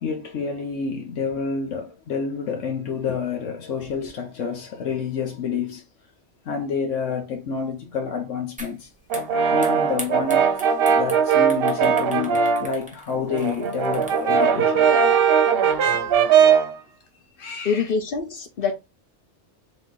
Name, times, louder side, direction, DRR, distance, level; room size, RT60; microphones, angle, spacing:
voice 1, 0.0-5.8 6.5-8.9 9.5-10.5 10.8-14.9 17.4-17.9, left 5 dB, 75° left, 1.2 m, -28 dB
sound 1, 8.6-8.8 9.1-14.4, right 1 dB, 5° right, 0.8 m, -39 dB
Brass instrument, 9.1-12.8 13.1-16.8, right 7 dB, 60° right, 0.8 m, -19 dB
voice 2, 17.6-18.7, left 5 dB, 50° left, 1.0 m, -24 dB
3.7 x 3.1 x 3.8 m
omnidirectional pair, 1.3 m